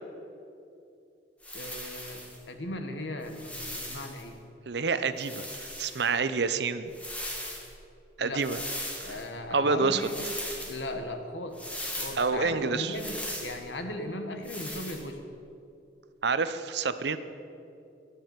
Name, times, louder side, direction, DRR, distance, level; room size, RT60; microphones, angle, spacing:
sound 1, 1.4-2.4 3.2-4.2 5.2-6.1 6.9-7.7 8.4-9.3 10.0-10.8 11.5-12.3 12.9-13.6 14.4-15.0, left 1 dB, 10° left, 1.9 m, -38 dB
voice 1, 1.5-2.2 2.5-4.4 8.2-8.4 9.0-10.3 10.7-15.2, left 1 dB, 80° left, 6 dB, 1.4 m, -37 dB
voice 2, 4.7-6.9 8.2-8.6 9.0-9.1 9.5-10.0 12.2-13.0 16.2-17.2, right 4 dB, 65° right, 12 dB, 0.7 m, -28 dB
12.0 x 11.0 x 7.3 m, 2.7 s
head